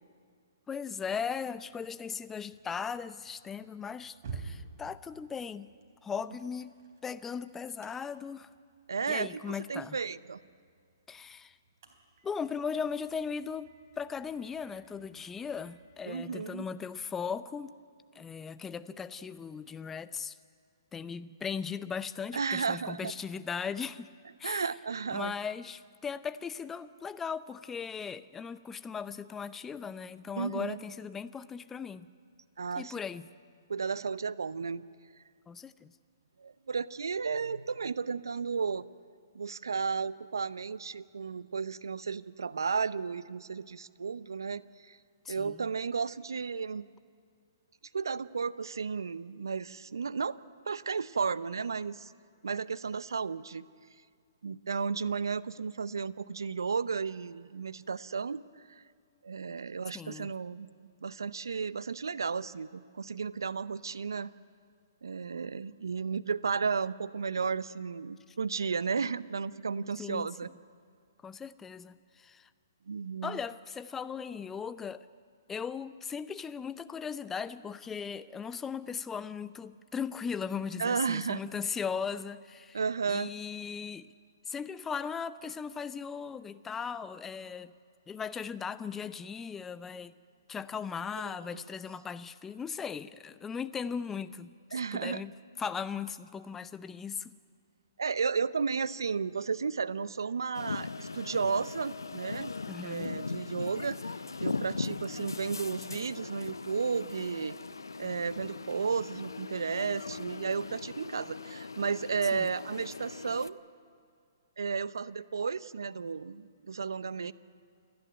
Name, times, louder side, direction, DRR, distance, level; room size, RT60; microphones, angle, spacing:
voice 1, 0.7-5.7 6.0-6.8 7.0-8.5 9.1-10.0 11.1-11.6 12.2-13.7 14.0-17.7 18.1-20.4 20.9-24.1 24.4-24.6 25.1-32.1 32.8-33.3 35.5-35.9 45.2-45.7 59.9-60.3 68.3-68.4 70.0-70.3 71.2-72.5 73.2-75.1 75.5-82.8 83.1-84.1 84.5-87.7 88.1-90.1 90.5-95.3 95.6-97.4 102.7-103.2 112.3-112.5, left 6 dB, 10° left, 0.6 m, -38 dB
sound 1, 1.5-16.2, right 5 dB, 50° right, 3.7 m, -52 dB
voice 2, 8.9-10.4 16.1-16.7 22.3-23.1 24.4-25.3 30.4-30.8 32.6-32.9 33.7-34.8 36.4-38.9 39.3-45.0 45.3-46.9 47.9-50.4 50.7-52.1 52.4-53.6 54.4-58.4 58.7-58.8 59.2-60.7 61.0-64.3 65.0-70.5 72.9-73.4 80.8-81.4 82.7-83.3 91.2-91.6 94.7-95.2 98.0-102.5 102.8-104.0 104.4-107.6 108.0-113.6 114.6-117.3, right 5 dB, 75° right, 0.6 m, -33 dB
sound 2, 100.5-113.5, left 4 dB, 85° left, 0.7 m, -39 dB
28.5 x 10.5 x 9.3 m
hypercardioid pair, 130°, 2 cm